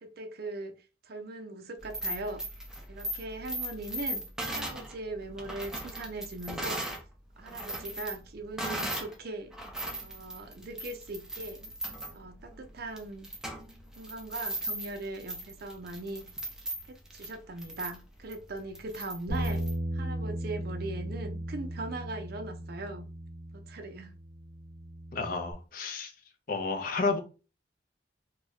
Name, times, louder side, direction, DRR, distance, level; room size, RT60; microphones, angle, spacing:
voice 1, 0.0-0.7 1.0-2.4 2.9-6.8 7.4-9.5 10.0-11.7 12.1-13.3 14.0-16.2 16.9-19.7 19.9-23.1 23.5-24.1, right 2 dB, 60° right, 0.5 m, -40 dB
sound 1, 1.8-7.0 7.4-9.2 9.5-19.8, right 1 dB, 5° right, 0.5 m, -38 dB
Bass guitar, 19.3-25.5, equal, 85° left, 0.9 m, -36 dB
voice 2, 25.1-26.1 26.5-27.2, left 4 dB, 50° left, 0.5 m, -31 dB
2.7 x 2.3 x 3.1 m
head